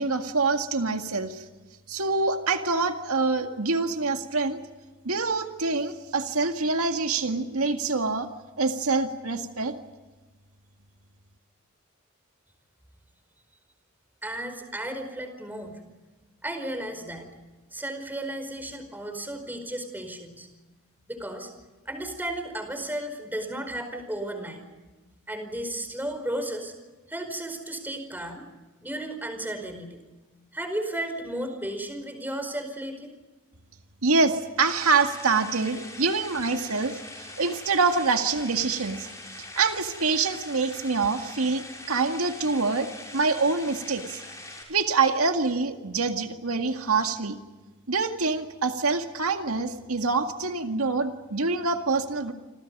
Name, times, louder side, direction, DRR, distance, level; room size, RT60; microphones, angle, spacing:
voice 1, 0.0-1.5 1.9-4.6 5.0-8.3 8.6-9.7 34.0-39.1 39.4-42.9 43.1-44.2 44.5-47.4 47.9-52.3, right 4 dB, 85° right, 5 dB, 2.0 m, -25 dB
voice 2, 14.2-15.8 16.4-17.3 17.7-20.5 21.1-21.5 21.8-24.6 25.3-26.7 27.1-28.5 28.8-30.0 30.5-33.1, right 1 dB, 10° right, 6 dB, 4.8 m, -34 dB
sound 1, 34.7-44.6, left 2 dB, 15° left, 6.5 m, -43 dB
29.0 x 26.0 x 5.4 m, 1.2 s
head